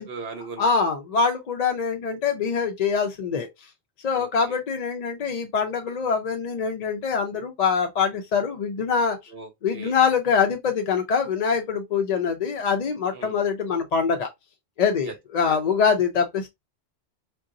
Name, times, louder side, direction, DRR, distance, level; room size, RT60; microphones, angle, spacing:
voice 1, 0.0-0.7 4.1-4.6 9.3-9.9 13.1-13.4 15.0-15.1 15.5-15.6, right 4 dB, 60° right, 0.9 m, -39 dB
voice 2, 0.6-3.5 4.0-9.2 9.6-14.3 14.8-16.5, left 6 dB, 55° left, 0.5 m, -24 dB
3.8 x 2.3 x 2.5 m
omnidirectional pair, 1.1 m